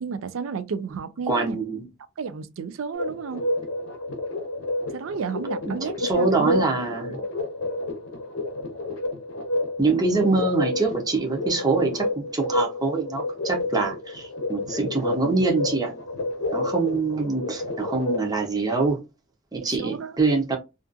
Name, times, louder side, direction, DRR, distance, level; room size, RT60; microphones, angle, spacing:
voice 1, 0.0-1.6 2.2-3.5 4.9-6.7 7.1-7.3 19.6-20.2, right 5 dB, 75° right, 0.4 m, -32 dB
voice 2, 1.3-1.8 5.7-7.2 9.8-15.9 16.5-19.0 19.5-20.6, right 3 dB, 20° right, 0.6 m, -24 dB
sound 1, 2.9-18.3, left 2 dB, 65° left, 0.7 m, -30 dB
2.5 x 2.3 x 2.5 m
head